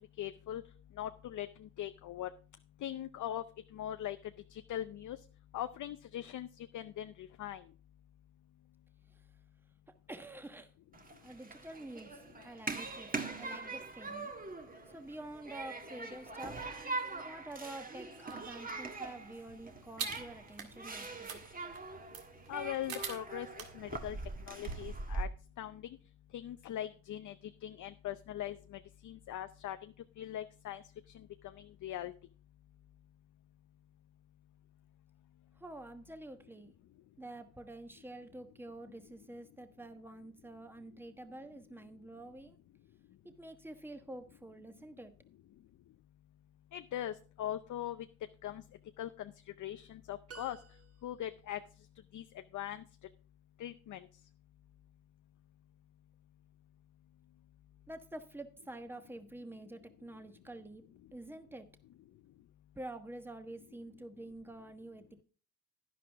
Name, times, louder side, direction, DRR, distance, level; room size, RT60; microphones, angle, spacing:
voice 1, 0.2-0.6 1.0-2.3 2.8-3.4 3.7-4.2 4.5-5.2 5.5-7.6 22.5-23.5 23.7-24.2 24.5-25.3 25.6-25.8 26.3-27.3 27.6-30.8 31.8-32.1 46.7-48.1 48.4-48.6 49.0-49.3 49.6-50.6 51.0-51.6 52.1-52.2 52.5-52.8 53.6-54.1, left 12 dB, 55° left, 10 dB, 0.6 m, -40 dB
voice 2, 10.1-10.7 11.2-13.1 13.4-14.3 14.9-16.6 17.2-21.4 35.5-36.7 37.2-42.6 43.2-45.1 57.9-60.8 61.1-61.7 62.8-65.2, right 1 dB, 5° right, 8 dB, 1.2 m, -48 dB
Human group actions, 10.9-25.2, right 3 dB, 25° right, 1.5 m, -43 dB
sound 1, 18.3-25.0, right 6 dB, 70° right, 1.9 m, -46 dB
sound 2, 50.3-51.4, right 6 dB, 40° right, 1.5 m, -53 dB
11.0 x 10.5 x 3.5 m, 0.40 s
cardioid pair, 80°, 36 cm